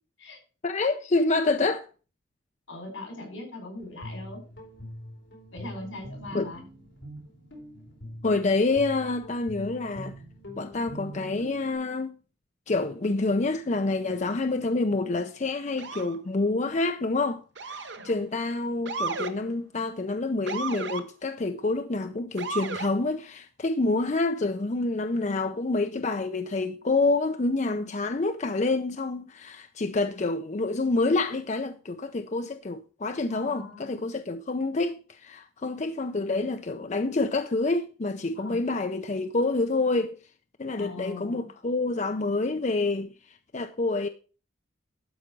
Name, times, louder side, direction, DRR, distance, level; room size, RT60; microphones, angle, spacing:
voice 1, 0.6-1.9 6.3-6.5 8.2-10.1 10.6-12.2 12.7-40.2 40.6-43.1 43.5-44.1, left 3 dB, 35° left, 0.5 m, -27 dB
voice 2, 2.7-4.4 5.5-6.6 17.9-18.2 33.3-34.0 38.3-38.6 40.8-41.5, left 2 dB, 80° left, 5.4 m, -40 dB
Guitar, 3.8-11.7, equal, 60° left, 4.4 m, -43 dB
Motor vehicle (road) / Siren, 15.8-16.2 17.6-18.1 18.9-19.3 20.5-21.0 22.4-22.9, right 4 dB, 60° right, 1.0 m, -33 dB
12.0 x 5.1 x 6.1 m
head